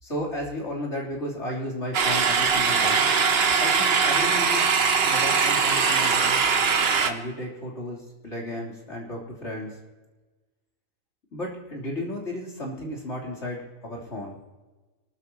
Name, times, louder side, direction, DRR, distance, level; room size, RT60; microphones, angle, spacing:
voice 1, 0.0-3.2 3.6-6.4 7.0-9.8 11.3-14.4, left 1 dB, 55° left, -3 dB, 3.7 m, -34 dB
sound 1, 1.9-7.1, right 5 dB, 50° right, 1.1 m, -21 dB
24.5 x 12.5 x 2.9 m, 1.2 s
omnidirectional pair, 1.4 m